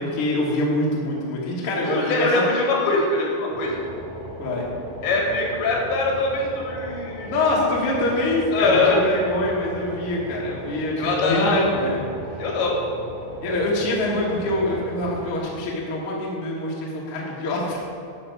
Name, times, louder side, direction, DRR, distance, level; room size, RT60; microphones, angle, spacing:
voice 1, 0.0-2.3 4.4-4.7 7.2-12.0 13.4-17.9, left 1 dB, 50° left, -4 dB, 1.8 m, -24 dB
voice 2, 1.6-3.8 5.0-7.4 8.5-9.0 11.0-11.7 12.4-12.8, left 3 dB, 80° left, -2 dB, 4.0 m, -23 dB
sound 1, 3.5-15.4, right 1 dB, 85° right, 1.3 m, -37 dB
12.5 x 6.3 x 4.6 m, 2.6 s
omnidirectional pair, 5.1 m